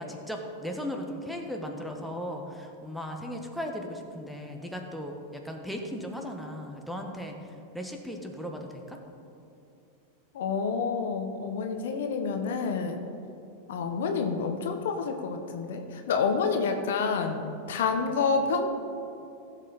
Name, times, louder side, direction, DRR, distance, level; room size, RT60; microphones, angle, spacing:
voice 1, 0.0-7.4 7.7-9.0, equal, ahead, 2 dB, 1.4 m, -37 dB
voice 2, 10.3-13.0 13.7-18.7, left 5 dB, 70° left, 5 dB, 1.1 m, -28 dB
15.5 x 7.3 x 4.2 m, 2.8 s
hypercardioid pair, 95°, 0 cm